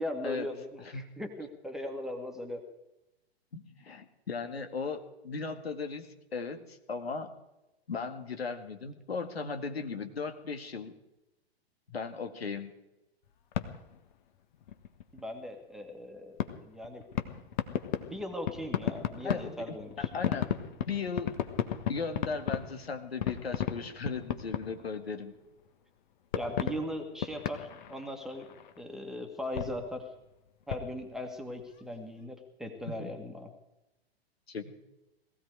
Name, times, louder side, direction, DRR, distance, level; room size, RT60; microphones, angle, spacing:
voice 1, 0.0-2.6 15.1-17.0 18.1-20.1 26.3-28.5 28.8-30.1 30.7-33.5, left 1 dB, ahead, 3 dB, 1.7 m, -39 dB
voice 2, 0.8-1.1 3.5-6.1 6.3-7.3 7.9-10.9 11.9-12.7 19.2-19.8 20.1-20.6 20.9-21.4 21.9-25.3 32.9-33.1 34.5-34.7, left 4 dB, 70° left, 7 dB, 2.0 m, -37 dB
sound 1, 13.2-14.2 14.4-15.2 16.2-25.7 26.3-28.8 29.5-31.9, left 10 dB, 45° left, 1.5 m, -36 dB
19.0 x 15.5 x 4.8 m, 0.93 s
figure-of-eight pair, 110°, 32 cm